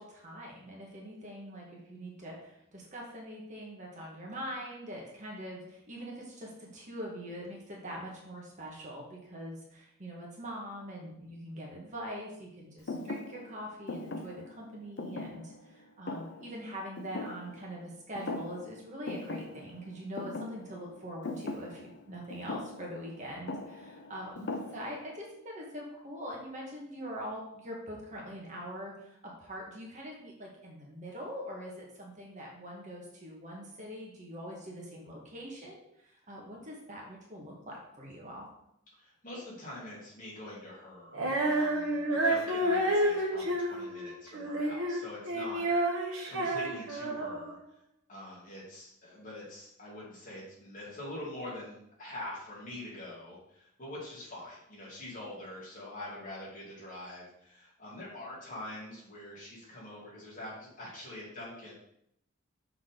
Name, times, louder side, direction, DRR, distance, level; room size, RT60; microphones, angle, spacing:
voice 1, 0.0-38.5, equal, 35° right, -2 dB, 1.7 m, -43 dB
Thump thud, 12.9-17.9 18.2-18.8 19.1-25.2, left 2 dB, 55° left, 0.6 m, -41 dB
voice 2, 39.0-47.6 48.1-61.7, left 1 dB, 40° left, -6 dB, 3.0 m, -44 dB
Female singing, 41.1-47.6, right 1 dB, 90° right, 1.3 m, -30 dB
6.3 x 6.1 x 3.9 m, 0.76 s
head